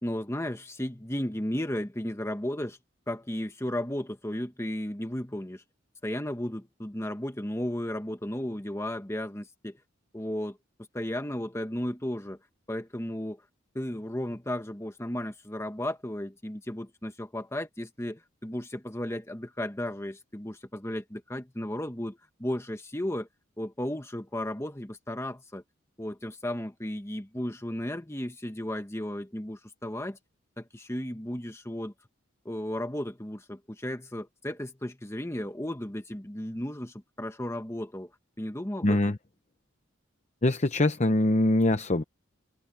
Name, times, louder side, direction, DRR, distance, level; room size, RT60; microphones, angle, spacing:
voice 1, 0.0-2.8 3.1-5.6 6.0-9.8 10.1-10.6 10.9-12.4 12.7-13.4 13.7-23.3 23.6-25.6 26.0-30.2 30.6-31.9 32.4-38.1 38.4-39.2, left 1 dB, 15° left, 1.4 m, -34 dB
voice 2, 38.8-39.2 40.4-42.0, left 1 dB, 35° left, 0.8 m, -23 dB
head